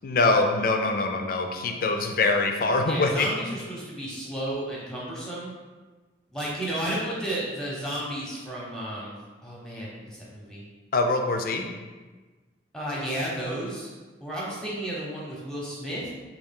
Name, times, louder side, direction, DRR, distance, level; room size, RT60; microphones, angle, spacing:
voice 1, 0.0-3.3 10.9-11.6, left 3 dB, 50° left, 4 dB, 0.4 m, -24 dB
voice 2, 2.9-5.5 6.3-9.2 9.4-10.6 12.7-13.9 14.2-16.1, right 1 dB, 5° left, -5 dB, 0.8 m, -32 dB
4.4 x 2.4 x 3.6 m, 1.3 s
head